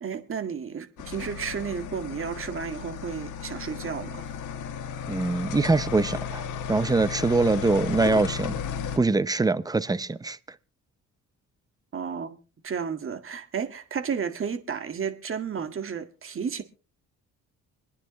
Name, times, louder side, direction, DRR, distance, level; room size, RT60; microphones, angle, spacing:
voice 1, 0.0-4.3 11.9-12.4 12.6-16.6, right 6 dB, 45° right, 1.9 m, -32 dB
sound 1, 1.0-9.0, left 7 dB, 90° left, 1.7 m, -34 dB
voice 2, 5.1-6.4 6.7-8.6 8.9-10.4, right 3 dB, 10° right, 0.7 m, -23 dB
25.5 x 9.9 x 3.1 m
cardioid pair, 90°, 30 cm